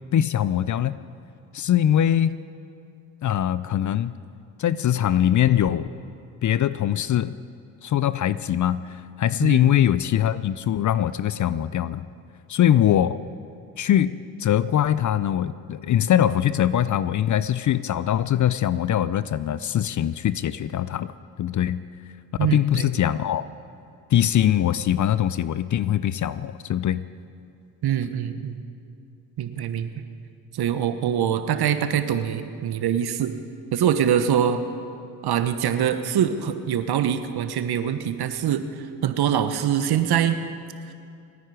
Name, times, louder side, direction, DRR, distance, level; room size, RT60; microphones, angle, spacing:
voice 1, 0.1-1.0 1.5-2.4 3.2-4.2 4.6-5.9 6.4-7.4 7.8-12.1 12.5-13.2 13.8-21.1 21.4-21.8 22.4-23.5 24.1-27.1, left 11 dB, 40° left, 16 dB, 0.6 m, -22 dB
voice 2, 9.4-9.8 22.4-22.9 27.8-28.6 29.4-29.9 30.5-33.3 33.7-34.6 35.2-38.6 39.0-40.4, right 9 dB, 55° right, 10 dB, 1.3 m, -24 dB
27.5 x 10.0 x 5.0 m, 2.5 s
hypercardioid pair, 50°, 45 cm